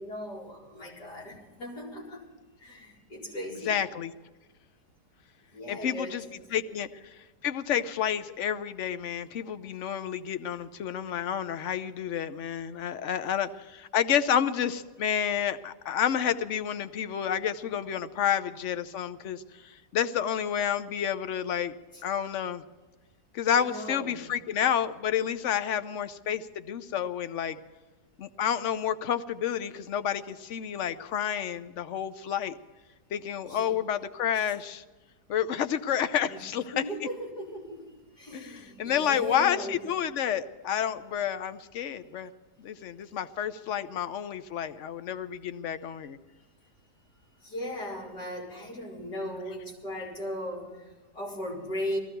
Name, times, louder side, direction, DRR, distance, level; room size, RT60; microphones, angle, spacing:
voice 1, 0.0-2.3 2.6-3.9 5.5-6.8 21.9-22.0 23.4-24.4 33.4-33.8 34.4-34.5 36.3-39.9 47.4-52.0, equal, 75° left, -5 dB, 5.1 m, -38 dB
voice 2, 3.6-4.1 5.7-6.2 6.5-6.9 7.2-21.7 22.0-22.6 23.3-27.6 28.2-32.5 33.1-34.8 35.3-36.8 38.3-42.3 42.6-46.2, left 9 dB, 55° left, 12 dB, 0.9 m, -30 dB
19.5 x 15.5 x 4.5 m, 1.2 s
omnidirectional pair, 1.8 m